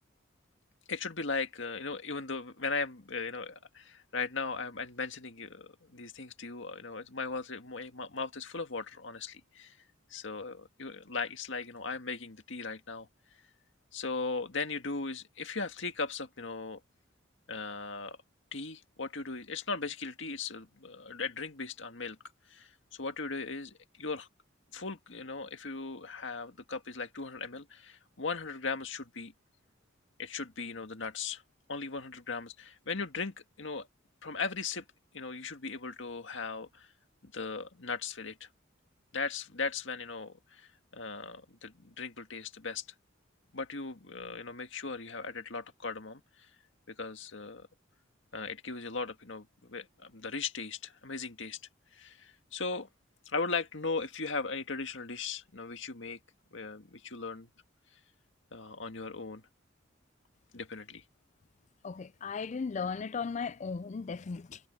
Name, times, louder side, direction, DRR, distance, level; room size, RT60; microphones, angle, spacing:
voice 1, 0.9-9.8 10.1-13.1 13.9-16.8 17.5-18.2 18.5-22.2 22.5-24.3 24.7-29.3 30.2-31.4 31.7-33.9 34.2-34.8 35.1-36.9 37.2-38.5 39.1-42.9 43.5-46.2 46.9-47.7 48.3-51.6 51.9-52.9 53.3-56.2 56.5-57.5 58.5-59.4 60.5-61.0, left 4 dB, 70° left, 1.9 m, -38 dB
voice 2, 61.8-64.6, left 5 dB, 35° left, 0.4 m, -36 dB
head